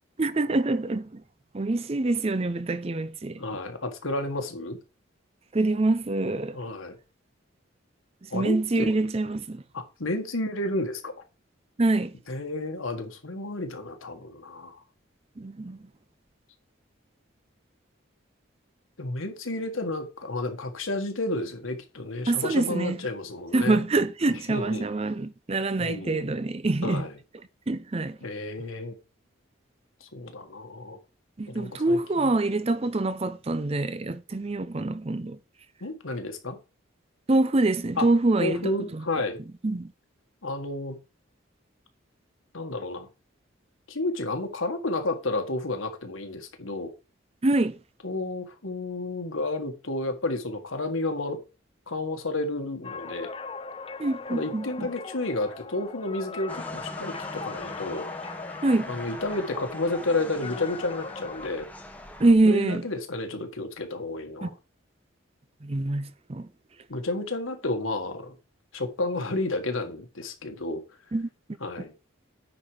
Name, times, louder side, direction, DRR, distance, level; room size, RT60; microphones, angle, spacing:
voice 1, 0.2-1.2 1.5-3.4 5.5-6.6 8.3-9.6 11.8-12.1 15.4-15.8 22.3-23.0 23.5-27.0 27.7-28.2 31.4-35.4 37.3-39.0 39.6-39.9 47.4-47.8 54.0-54.9 58.6-58.9 62.2-62.8 64.4-64.5 65.6-66.5 71.1-71.3, right 2 dB, 30° right, 0.5 m, -25 dB
voice 2, 3.4-4.8 6.5-7.0 8.3-8.9 9.7-11.1 12.3-14.8 19.0-23.8 24.3-24.8 25.8-26.3 26.8-27.1 28.2-29.0 30.0-31.0 31.5-32.4 35.8-36.6 38.0-38.1 38.4-39.4 40.4-41.0 42.5-43.1 43.9-46.9 48.0-51.4 51.9-53.3 54.3-58.1 58.9-61.7 62.4-64.5 66.9-68.3 68.7-70.8 71.6-71.9, left 2 dB, 85° left, 1.6 m, -31 dB
sound 1, 52.8-61.5, left 4 dB, 25° left, 0.4 m, -39 dB
sound 2, 56.5-62.3, left 1 dB, 10° left, 1.0 m, -41 dB
9.7 x 4.2 x 4.9 m
head